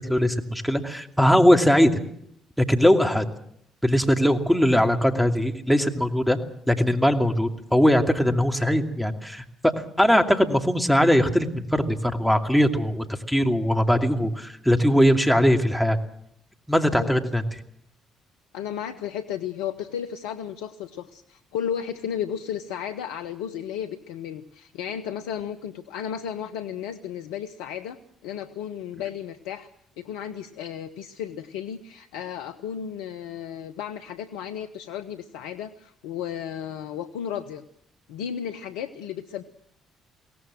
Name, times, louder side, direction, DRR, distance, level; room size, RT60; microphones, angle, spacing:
voice 1, 0.1-2.0 2.6-3.2 3.8-6.4 6.7-9.7 10.0-16.0 16.7-17.4, equal, ahead, 6 dB, 2.6 m, -20 dB
voice 2, 18.5-29.7 30.0-37.6 38.1-39.4, left 9 dB, 75° left, 8 dB, 0.8 m, -34 dB
22.5 x 17.5 x 7.6 m, 0.71 s
hypercardioid pair, 50°, 0 cm